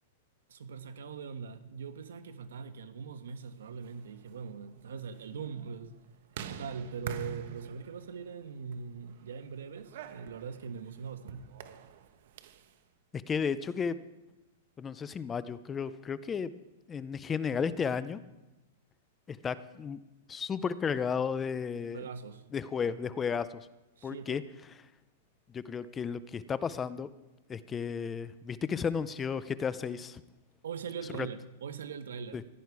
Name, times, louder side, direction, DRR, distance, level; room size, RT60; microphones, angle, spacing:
voice 1, 0.5-6.0 6.4-11.5 21.9-22.4 24.0-24.4 30.6-32.4, right 6 dB, 90° right, 1.2 m, -41 dB
sound 1, 3.7-12.8, right 8 dB, 60° right, 1.1 m, -47 dB
voice 2, 13.1-14.0 14.8-16.5 16.9-18.2 19.3-20.0 20.3-22.0 22.5-23.7 24.0-24.4 25.5-27.1 27.5-30.2 31.2-31.3 32.3-32.4, left 6 dB, 15° left, 0.5 m, -33 dB
15.5 x 11.5 x 4.8 m
hypercardioid pair, 150°, 0 cm